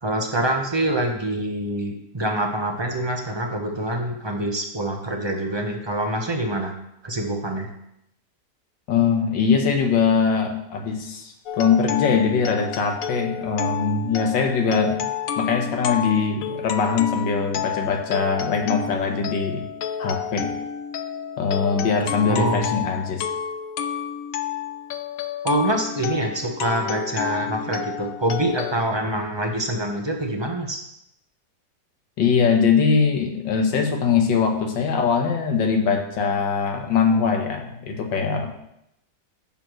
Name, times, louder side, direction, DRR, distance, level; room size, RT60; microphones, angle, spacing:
voice 1, 0.0-6.7 7.0-7.7 22.3-22.8 25.4-30.8, right 1 dB, 20° right, 2 dB, 0.8 m, -25 dB
voice 2, 8.9-15.1 15.4-19.7 20.0-20.5 21.4-23.3 32.2-38.6, left 5 dB, 90° left, 3 dB, 1.9 m, -22 dB
sound 1, 11.5-28.7, left 8 dB, 70° left, 0.8 m, -30 dB
11.0 x 7.0 x 3.1 m, 0.79 s
omnidirectional pair, 1.9 m